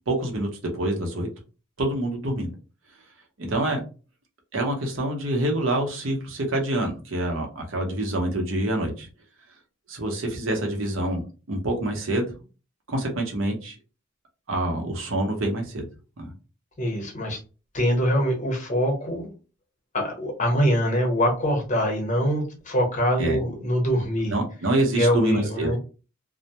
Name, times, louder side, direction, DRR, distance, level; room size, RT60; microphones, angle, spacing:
voice 1, 0.1-1.3 1.8-2.5 3.4-3.8 4.5-9.1 9.9-12.3 12.9-13.7 14.5-15.9 16.2-16.3 23.2-23.4 24.3-25.8, right 1 dB, 80° right, 2 dB, 0.7 m, -26 dB
voice 2, 16.8-17.4 17.7-19.3 19.9-24.3 24.9-25.8, equal, 40° left, 1 dB, 0.9 m, -24 dB
2.1 x 2.1 x 2.8 m, 0.34 s
head